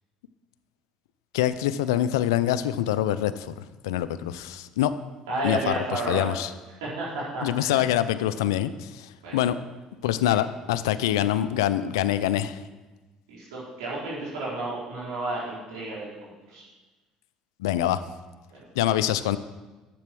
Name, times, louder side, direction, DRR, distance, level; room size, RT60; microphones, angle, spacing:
voice 1, 1.3-4.9 5.4-6.5 7.4-9.6 10.0-12.6 17.6-18.0 18.7-19.4, left 12 dB, 85° left, 14 dB, 0.5 m, -25 dB
voice 2, 5.3-6.3 6.8-7.9 9.2-9.5 10.3-10.4 13.3-16.1 16.5-16.6 18.5-18.6, right 2 dB, 90° right, -6 dB, 4.5 m, -32 dB
10.5 x 7.7 x 6.2 m, 1.2 s
hypercardioid pair, 65°, 2 cm